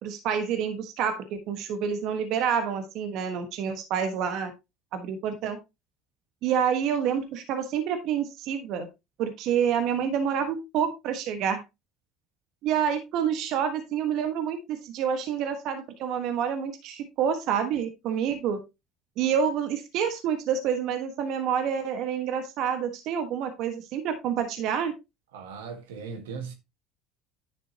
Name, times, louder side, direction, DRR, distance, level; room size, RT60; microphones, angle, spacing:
voice 1, 0.0-4.5 4.9-5.6 6.4-8.9 9.2-11.6 12.6-18.6 19.2-24.9, right 8 dB, 60° right, 1.4 m, -28 dB
voice 2, 25.3-26.5, right 5 dB, 85° right, 1.5 m, -38 dB
10.5 x 6.1 x 2.8 m
hypercardioid pair, 70°, 0 cm